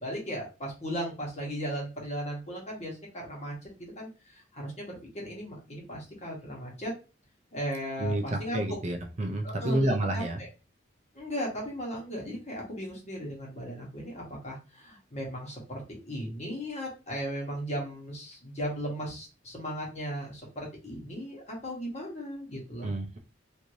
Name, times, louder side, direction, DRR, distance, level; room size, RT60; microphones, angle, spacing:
voice 1, 0.0-6.9 7.5-8.6 9.4-10.5 11.1-22.9, equal, 35° left, -2 dB, 1.2 m, -37 dB
voice 2, 8.0-10.4 22.8-23.2, right 1 dB, 35° right, 4 dB, 0.4 m, -29 dB
3.1 x 2.6 x 2.6 m, 0.32 s
head